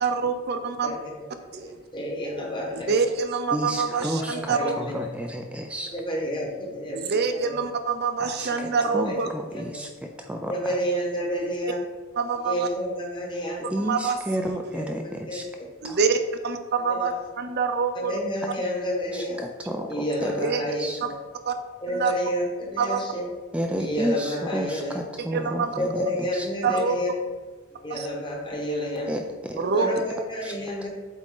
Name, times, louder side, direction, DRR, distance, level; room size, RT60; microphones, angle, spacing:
voice 1, 0.0-1.0 1.5-1.8 2.7-4.7 7.0-9.3 12.2-12.7 13.8-14.2 14.7-14.8 15.8-16.2 16.4-18.1 20.4-20.6 21.5-21.6 21.9-22.1 22.8-23.0 25.2-25.8 26.6-27.0 27.9-28.1 29.6-29.9, right 5 dB, 50° right, 8 dB, 0.6 m, -25 dB
voice 2, 0.8-3.0 3.8-4.9 5.9-7.6 8.5-9.2 9.5-9.8 10.5-11.8 12.4-13.7 14.7-15.7 16.9-17.1 17.9-19.4 19.9-21.1 21.8-23.2 23.8-25.0 25.8-27.1 27.7-29.2 29.7-30.9, equal, 25° left, -1 dB, 1.2 m, -30 dB
voice 3, 3.5-5.9 8.2-10.5 13.7-15.4 15.8-16.0 19.1-20.3 20.8-21.0 23.5-26.5 29.1-29.6 30.4-30.5, equal, 5° right, 3 dB, 0.3 m, -31 dB
8.1 x 3.6 x 3.8 m, 1.3 s
head